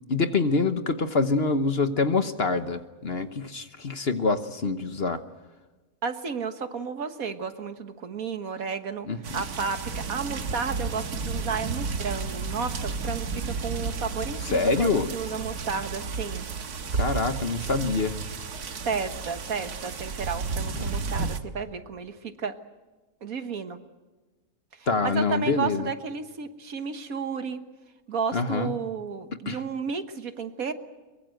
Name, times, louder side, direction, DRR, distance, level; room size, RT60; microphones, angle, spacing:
voice 1, 0.1-5.2 9.1-9.2 14.4-15.1 16.9-18.1 20.8-20.9 24.9-25.9 28.3-28.7 29.5-29.6, left 4 dB, 45° left, 9 dB, 1.3 m, -25 dB
voice 2, 6.0-9.1 9.3-16.5 18.8-22.5 23.2-23.8 25.0-27.6 28.1-30.7, right 5 dB, 65° right, 8 dB, 1.8 m, -32 dB
sound 1, 9.2-21.4, right 4 dB, 85° right, 1.9 m, -32 dB
23.0 x 23.0 x 7.9 m, 1.2 s
omnidirectional pair, 1.6 m